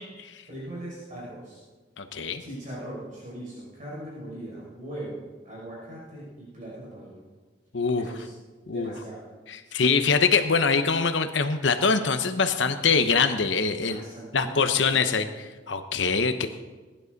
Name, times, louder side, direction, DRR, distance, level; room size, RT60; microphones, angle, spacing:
voice 1, 0.4-1.6 2.4-7.1 8.0-8.3 8.7-9.2 9.6-9.9 13.8-15.2, right 1 dB, 45° right, -7 dB, 5.8 m, -40 dB
voice 2, 2.0-2.4 7.7-8.1 8.7-8.9 9.5-14.0 14.3-15.2 15.7-16.5, left 5 dB, 75° left, 9 dB, 0.9 m, -23 dB
21.0 x 11.0 x 4.0 m, 1.3 s
head